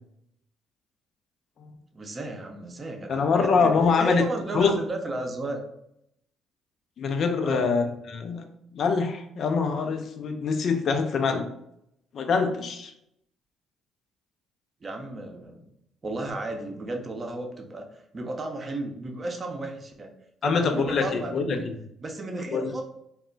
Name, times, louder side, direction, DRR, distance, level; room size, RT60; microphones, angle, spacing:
voice 1, 1.9-3.7 4.0-5.6 7.4-7.8 14.8-15.7 16.0-20.1 20.4-21.7 22.0-22.8, right 2 dB, 35° right, 3 dB, 0.6 m, -33 dB
voice 2, 3.1-4.3 4.5-4.8 7.0-8.4 8.7-11.5 12.1-12.9 20.4-21.7 22.5-22.7, left 5 dB, 60° left, 6 dB, 0.4 m, -24 dB
2.1 x 2.1 x 3.8 m, 0.76 s
supercardioid pair, 65°, 0 cm